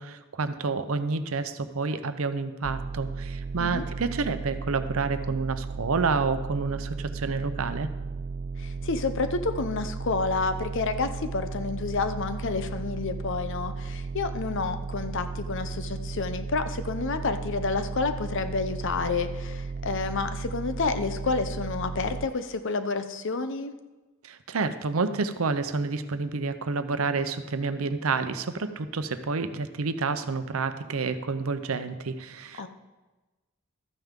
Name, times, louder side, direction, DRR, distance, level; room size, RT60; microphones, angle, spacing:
voice 1, 0.0-7.9 24.2-32.7, right 4 dB, 90° right, 10 dB, 0.7 m, -29 dB
sound 1, 2.6-22.3, right 4 dB, 40° right, 0.4 m, -35 dB
voice 2, 8.6-23.7 32.6-32.7, left 4 dB, 65° left, 10 dB, 0.7 m, -29 dB
13.0 x 9.1 x 3.7 m, 1.2 s
head